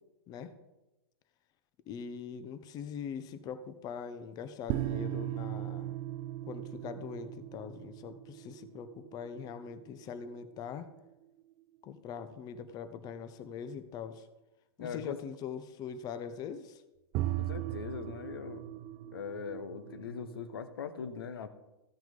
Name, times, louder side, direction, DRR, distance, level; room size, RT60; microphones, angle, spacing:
voice 1, 1.9-6.0 6.5-10.9 11.8-14.3 14.8-16.8, left 7 dB, 30° left, 11 dB, 0.9 m, -42 dB
sound 1, 4.7-11.4 17.1-20.6, right 14 dB, 30° right, 0.4 m, -39 dB
voice 2, 14.8-15.2 17.4-18.6 19.1-21.5, left 6 dB, 65° left, 10 dB, 1.2 m, -40 dB
14.5 x 6.1 x 5.2 m, 1.0 s
figure-of-eight pair, 105°, 14 cm